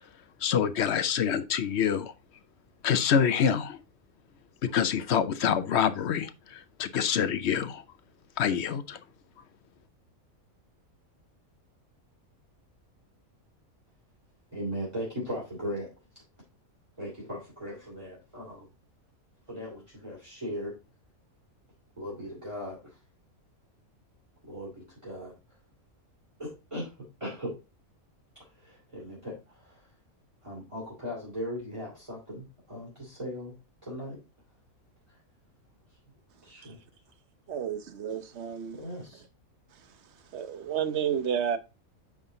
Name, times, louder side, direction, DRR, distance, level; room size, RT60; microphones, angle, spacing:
voice 1, 0.4-2.1 2.8-3.8 4.6-7.8 8.4-9.0, left 8 dB, 60° left, 0.8 m, -26 dB
voice 2, 14.5-15.9 17.0-18.7 19.5-20.8 22.0-23.0 24.5-25.3 26.4-27.6 28.6-29.9 30.4-33.5 33.8-34.2 35.1-35.2 36.4-36.8 38.8-39.2, equal, 20° right, 2.6 m, -38 dB
voice 3, 37.5-38.8 40.3-41.6, right 8 dB, 55° right, 1.0 m, -31 dB
9.5 x 3.8 x 3.8 m
omnidirectional pair, 1.5 m